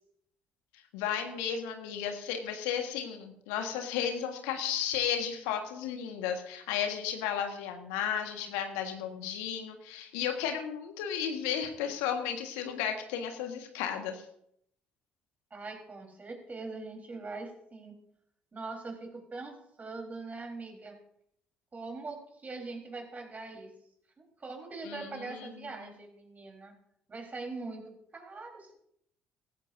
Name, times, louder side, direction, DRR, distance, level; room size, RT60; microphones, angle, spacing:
voice 1, 0.9-14.2 24.8-25.5, left 8 dB, 75° left, 5 dB, 1.6 m, -34 dB
voice 2, 15.5-18.0 18.5-21.0 21.7-23.7 24.2-26.7 27.1-28.8, right 3 dB, 30° right, 2 dB, 4.2 m, -42 dB
17.5 x 15.0 x 2.7 m, 0.72 s
hypercardioid pair, 50°, 5 cm